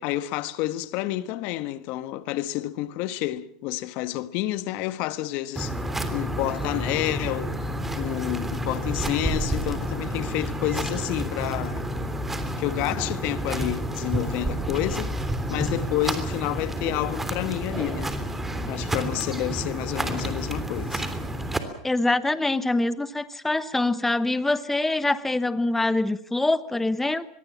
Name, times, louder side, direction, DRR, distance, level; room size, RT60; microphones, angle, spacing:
voice 1, 0.0-7.5 7.9-11.9 12.6-18.1 18.7-21.1, left 15 dB, 60° left, 1.3 m, -29 dB
sound 1, 5.6-21.6, right 1 dB, 10° right, 3.2 m, -29 dB
voice 2, 21.8-27.3, left 2 dB, 10° left, 1.1 m, -24 dB
24.0 x 22.0 x 7.3 m
hypercardioid pair, 105°, 3 cm